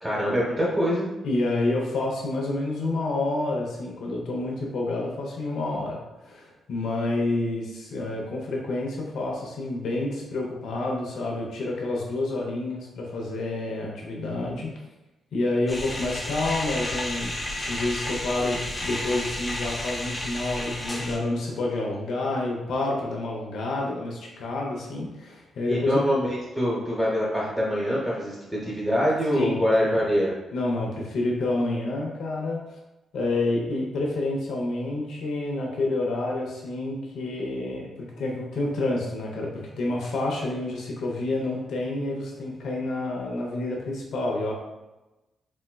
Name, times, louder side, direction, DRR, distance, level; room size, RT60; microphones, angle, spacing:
voice 1, 0.0-1.1 25.7-28.3 28.6-30.3, equal, 20° right, -6 dB, 1.2 m, -24 dB
voice 2, 1.2-14.7 15.3-17.3 17.6-26.0 29.3-30.0 30.5-32.6 33.1-44.5, left 2 dB, 75° left, -2 dB, 0.8 m, -28 dB
sound 1, 15.7-21.2, left 1 dB, 25° left, 0.8 m, -32 dB
4.2 x 2.1 x 2.2 m, 1.0 s
hypercardioid pair, 45°, 0 cm